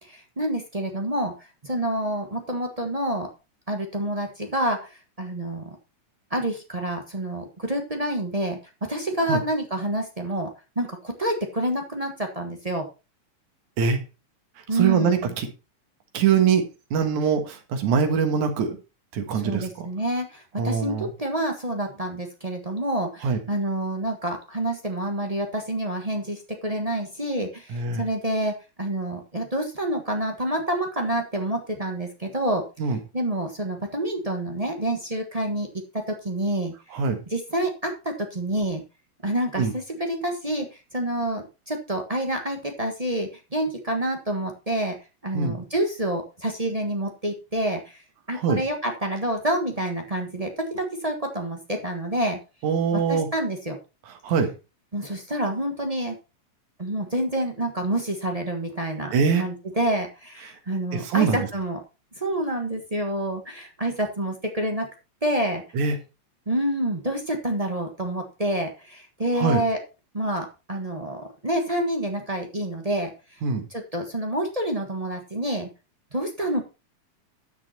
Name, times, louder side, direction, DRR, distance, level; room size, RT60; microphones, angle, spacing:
voice 1, 0.0-3.3 3.7-5.8 6.3-12.9 14.7-15.3 19.3-32.7 33.1-35.7 35.9-37.0 37.3-38.8 39.2-45.0 45.2-48.0 48.3-52.4 52.9-53.8 54.9-56.2 56.8-59.1 59.4-61.8 62.2-64.9 65.2-65.6 66.5-69.8 70.1-73.1 73.7-75.7 76.1-76.6, right 1 dB, 50° right, 3 dB, 0.4 m, -28 dB
voice 2, 14.7-15.5 16.1-16.6 16.9-18.8 19.1-19.9 20.6-21.1 23.2-23.4 27.7-28.0 32.8-33.0 36.9-37.2 39.6-39.7 45.3-45.6 48.3-48.6 52.6-53.3 54.2-54.5 59.1-59.5 60.9-61.5 65.7-66.0 69.4-69.6 73.4-73.6, right 6 dB, 80° right, 6 dB, 3.1 m, -23 dB
11.5 x 6.7 x 4.3 m, 0.29 s
omnidirectional pair, 3.3 m